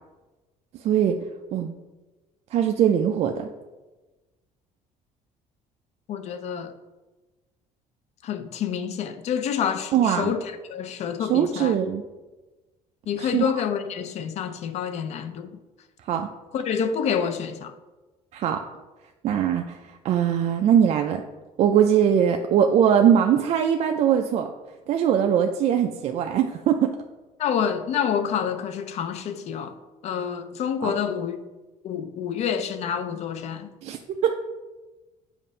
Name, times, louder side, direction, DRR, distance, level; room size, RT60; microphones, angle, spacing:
voice 1, 0.8-1.2 1.5-1.7 2.5-3.5 9.9-10.3 11.2-12.0 13.2-13.4 16.1-16.3 18.3-18.6 19.2-21.2 21.6-24.5 24.9-27.0 30.8-30.9 33.8-34.4, right 9 dB, 55° right, 0.4 m, -21 dB
voice 2, 6.1-6.7 8.2-10.4 10.7-11.8 13.1-15.6 16.5-17.7 27.4-29.8 30.0-31.4 31.8-33.7, left 7 dB, 55° left, 0.5 m, -28 dB
7.2 x 2.5 x 5.3 m
cardioid pair, 135°, 13 cm